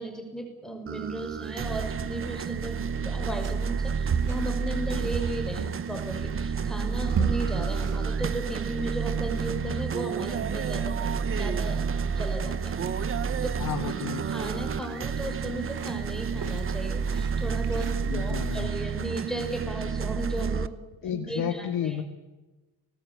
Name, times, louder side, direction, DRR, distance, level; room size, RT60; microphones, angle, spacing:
voice 1, 0.0-12.8 13.4-13.6 14.3-20.7 21.0-22.0, right 1 dB, ahead, 4 dB, 5.9 m, -36 dB
sound 1, 0.9-20.7, right 6 dB, 35° right, 1.0 m, -30 dB
sound 2, 1.2-18.3, right 6 dB, 55° right, 3.4 m, -38 dB
voice 2, 13.6-14.3 18.1-18.7 21.0-22.0, left 9 dB, 55° left, 6 dB, 1.9 m, -31 dB
29.5 x 20.0 x 8.6 m, 1.1 s
cardioid pair, 140°, 39 cm